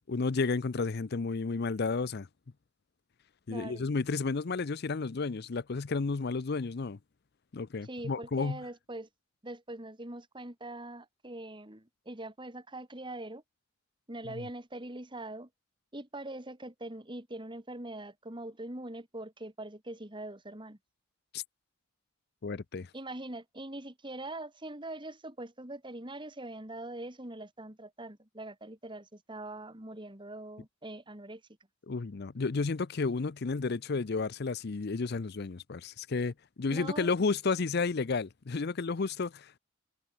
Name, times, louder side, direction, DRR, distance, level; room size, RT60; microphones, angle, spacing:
voice 1, 0.0-2.3 3.5-7.0 7.5-8.6 21.3-21.4 22.4-22.9 31.9-39.6, left 4 dB, 50° left, 0.6 m, -32 dB
voice 2, 3.5-3.9 7.8-9.1 9.4-13.4 14.1-15.5 15.9-20.8 22.9-31.4 36.7-37.1, right 1 dB, 25° right, 2.6 m, -42 dB
head